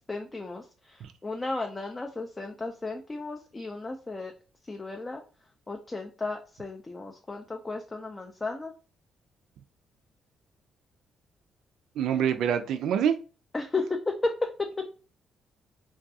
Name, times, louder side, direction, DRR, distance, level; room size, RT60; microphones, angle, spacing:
voice 1, 0.1-0.6 1.2-4.3 4.7-5.2 5.7-8.7 13.5-14.8, left 3 dB, 20° left, 3 dB, 0.3 m, -33 dB
voice 2, 12.0-13.1, right 8 dB, 80° right, 8 dB, 0.3 m, -25 dB
2.3 x 2.3 x 2.6 m, 0.36 s
cardioid pair, 90°, 0 cm